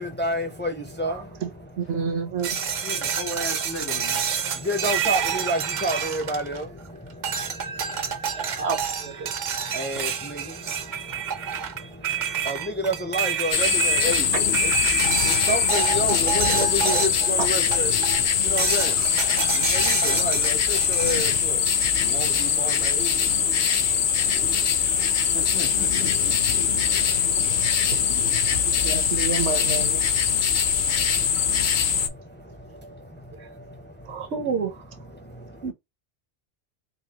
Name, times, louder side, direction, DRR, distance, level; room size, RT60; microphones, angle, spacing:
voice 1, 0.0-3.3 4.3-8.7 9.2-25.4 26.1-34.3 35.0-35.7, equal, 15° left, 0.5 m, -33 dB
voice 2, 1.1-1.5 1.8-2.5 8.3-9.3 14.3-14.4 17.4-17.5 19.8-20.0 24.1-24.2 24.8-25.0 27.9-28.0 28.3-30.0 33.4-33.5 34.1-34.8 35.6-35.7, right 5 dB, 75° right, 1.1 m, -30 dB
sound 1, 2.4-6.8 7.2-17.3 17.7-18.2 18.6-21.3, right 8 dB, 55° right, 0.6 m, -28 dB
voice 3, 2.8-4.3 25.3-26.3, left 2 dB, 90° left, 1.5 m, -36 dB
sound 2, 13.5-32.1, left 7 dB, 55° left, 0.6 m, -22 dB
4.0 x 2.7 x 2.8 m
omnidirectional pair, 1.1 m